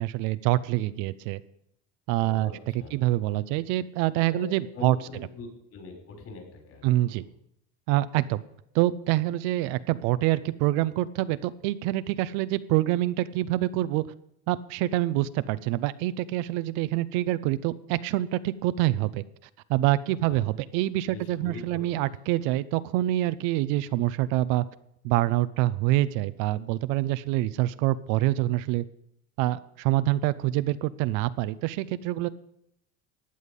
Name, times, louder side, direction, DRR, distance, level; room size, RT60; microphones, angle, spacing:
voice 1, 0.0-1.4 2.1-2.5 2.9-5.0 6.8-7.2 7.9-8.4 8.7-14.0 14.5-19.2 19.7-24.6 25.0-28.8 29.4-32.3, right 16 dB, 70° right, 14 dB, 0.7 m, -26 dB
voice 2, 2.2-3.1 4.3-4.5 4.7-6.9 7.1-7.2 20.2-20.4 21.1-22.0, left 2 dB, 50° left, 3 dB, 5.5 m, -42 dB
15.0 x 9.4 x 5.4 m, 0.75 s
supercardioid pair, 105°, 32 cm